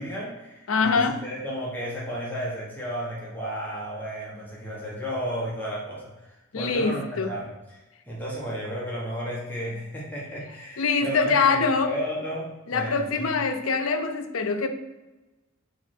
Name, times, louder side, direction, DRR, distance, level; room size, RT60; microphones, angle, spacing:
voice 1, 0.0-7.8 8.0-13.3, equal, 10° left, -6 dB, 1.2 m, -33 dB
voice 2, 0.7-1.2 6.5-7.3 10.8-11.9 12.7-14.7, left 4 dB, 80° left, 7 dB, 0.6 m, -24 dB
7.0 x 3.2 x 4.4 m, 1.1 s
head